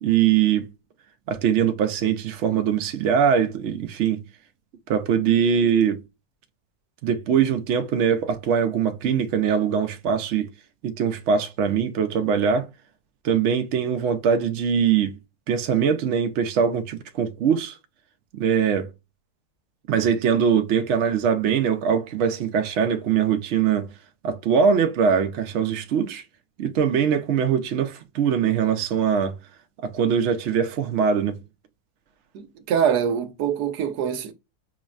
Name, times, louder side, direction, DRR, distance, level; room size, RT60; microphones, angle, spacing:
voice 1, 0.0-0.7 1.3-4.2 4.9-6.0 7.0-10.5 10.8-12.7 13.2-15.1 15.5-17.8 18.3-18.9 19.9-23.9 24.2-26.2 26.6-29.4 29.8-31.4, right 7 dB, 60° right, 0.8 m, -22 dB
voice 2, 32.3-34.3, right 8 dB, 85° right, 1.2 m, -24 dB
6.1 x 2.1 x 2.3 m
omnidirectional pair, 1.7 m